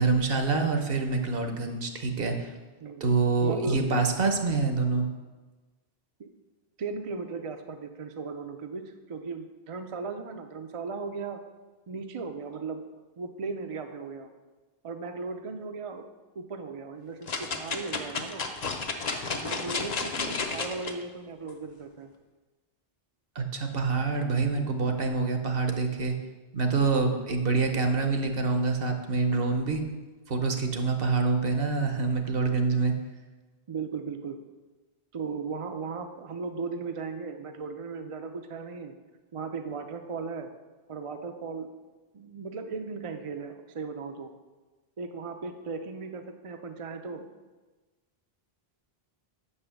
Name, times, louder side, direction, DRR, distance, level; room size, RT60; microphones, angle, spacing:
voice 1, 0.0-2.5 3.0-5.1 23.3-26.1 26.5-29.8 30.3-32.9, right 4 dB, 65° right, 5 dB, 1.1 m, -26 dB
voice 2, 3.4-3.8 6.2-6.3 6.8-11.4 11.9-12.8 13.2-14.3 14.8-16.1 16.4-18.4 19.3-22.1 33.7-34.4 35.1-38.9 39.3-40.5 40.9-41.7 42.1-44.3 45.0-47.2, right 4 dB, 40° right, 6 dB, 0.5 m, -37 dB
sound 1, 17.3-20.9 21.5-21.6, left 4 dB, 45° left, 0.7 m, -32 dB
6.0 x 5.6 x 6.9 m, 1.2 s
omnidirectional pair, 1.0 m